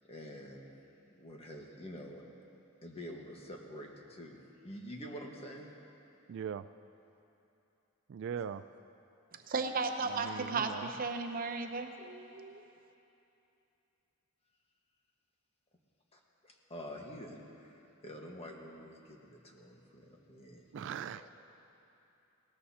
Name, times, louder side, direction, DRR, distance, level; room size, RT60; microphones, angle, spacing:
voice 1, 0.1-0.7 1.1-2.3 2.8-5.7 16.1-21.3, equal, 30° left, 0 dB, 1.4 m, -47 dB
voice 2, 6.3-6.6 8.1-8.6 10.1-10.9 20.7-21.2, right 7 dB, 60° right, 13 dB, 0.3 m, -40 dB
voice 3, 9.5-12.6, right 4 dB, 45° right, 6 dB, 0.7 m, -35 dB
20.0 x 18.0 x 2.9 m, 2.9 s
head